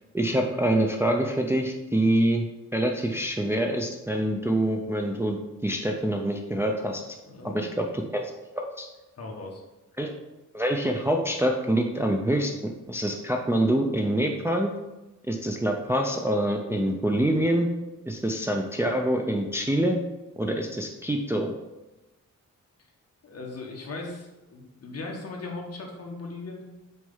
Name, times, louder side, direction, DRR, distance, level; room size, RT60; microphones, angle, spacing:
voice 1, 0.1-2.5 2.7-5.4 5.6-7.0 7.5-7.8 8.1-8.2 8.5-8.9 10.0-10.1 10.5-14.7 15.3-17.7 18.1-20.0 20.4-21.5, right 1 dB, 10° right, 2 dB, 0.5 m, -25 dB
voice 2, 7.3-7.7 9.2-9.6 23.2-26.7, left 3 dB, 50° left, 0 dB, 1.5 m, -38 dB
6.2 x 4.6 x 5.5 m, 1.0 s
wide cardioid pair, 170°, 31 cm